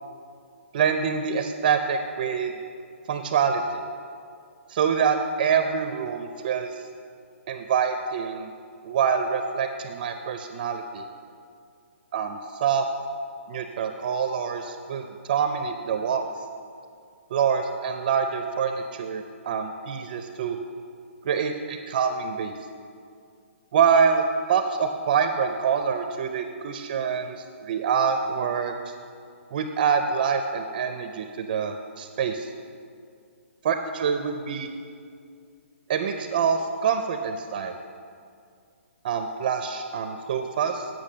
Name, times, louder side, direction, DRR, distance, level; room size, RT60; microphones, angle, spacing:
voice 1, 0.7-2.5 3.1-3.8 4.7-6.8 7.5-8.5 8.8-11.1 12.1-12.9 13.5-16.3 17.3-20.6 21.2-22.5 23.7-28.9 29.5-32.5 33.6-34.7 35.9-37.8 39.0-40.9, right 6 dB, 35° right, 7 dB, 0.4 m, -26 dB
8.5 x 6.1 x 6.2 m, 2.3 s
hypercardioid pair, 160°, 7 cm